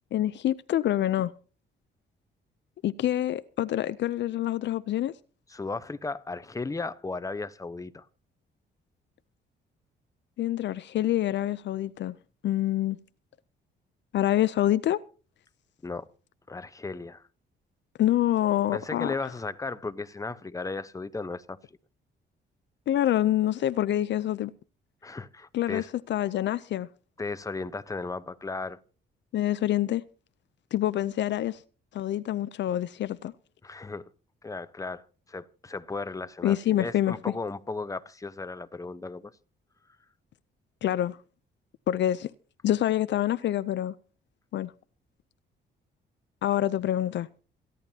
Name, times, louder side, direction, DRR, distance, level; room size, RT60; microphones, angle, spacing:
voice 1, 0.1-1.3 2.8-5.1 10.4-12.2 12.4-13.0 14.1-15.0 18.0-19.1 22.9-24.5 25.5-25.8 26.1-26.9 29.3-30.0 30.7-31.6 31.9-33.3 36.4-37.2 40.8-41.2 41.9-42.3 42.6-43.9 44.5-44.7 46.4-47.3, left 12 dB, 65° left, 0.5 m, -26 dB
voice 2, 5.5-8.1 15.8-16.1 16.5-17.2 18.7-21.6 25.0-25.9 27.2-28.8 33.6-34.1 34.4-39.3, left 3 dB, 15° left, 0.9 m, -35 dB
28.0 x 11.0 x 2.8 m
cardioid pair, 90°, 20 cm